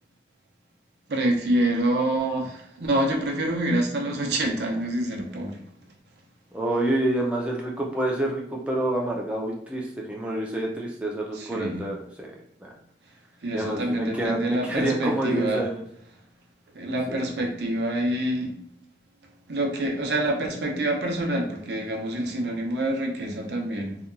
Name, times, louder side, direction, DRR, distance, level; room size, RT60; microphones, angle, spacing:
voice 1, 1.1-5.6 11.3-11.8 13.4-15.7 16.7-18.6 19.5-24.0, right 1 dB, 75° right, 1 dB, 0.6 m, -26 dB
voice 2, 6.5-12.3 12.6-12.7 13.5-15.8 17.1-17.2, right 1 dB, 5° right, -2 dB, 0.3 m, -28 dB
2.8 x 2.2 x 2.5 m, 0.72 s
head